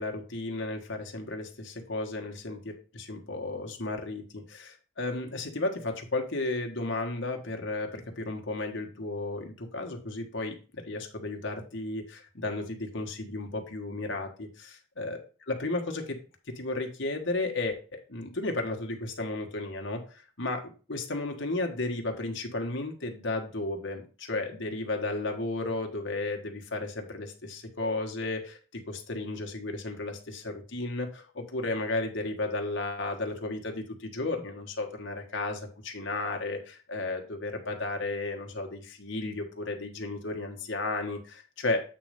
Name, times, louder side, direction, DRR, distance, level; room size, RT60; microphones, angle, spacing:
voice 1, 0.0-15.2 15.5-16.2 16.5-41.8, left 2 dB, 65° left, 3 dB, 1.4 m, -34 dB
8.3 x 3.2 x 5.1 m, 0.37 s
head